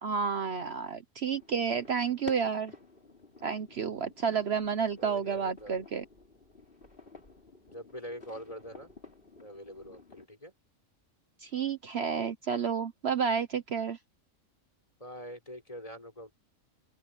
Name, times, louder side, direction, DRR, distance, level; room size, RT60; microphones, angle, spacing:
voice 1, 0.0-2.7 3.4-6.0 11.4-14.0, right 6 dB, 55° right, 1.1 m, -30 dB
sound 1, 1.3-10.2, left 3 dB, 40° left, 3.7 m, -52 dB
voice 2, 5.0-5.9 7.7-8.9 9.4-10.5 15.0-16.3, equal, 25° left, 5.0 m, -44 dB
open air
omnidirectional pair, 1.4 m